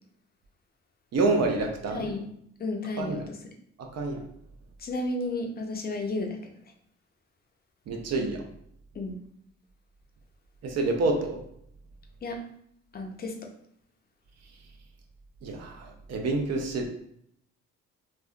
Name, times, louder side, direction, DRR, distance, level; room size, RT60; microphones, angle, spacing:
voice 1, 1.1-2.1 3.0-3.2 3.8-4.2 7.9-8.4 10.6-11.4 15.4-16.9, right 3 dB, 60° right, 3 dB, 0.7 m, -27 dB
voice 2, 1.9-2.3 2.6-3.4 4.8-6.4 8.9-9.2 12.2-12.4 12.9-13.5, left 2 dB, 30° left, 3 dB, 0.5 m, -32 dB
3.2 x 2.5 x 2.2 m, 0.71 s
cardioid pair, 90°, 30 cm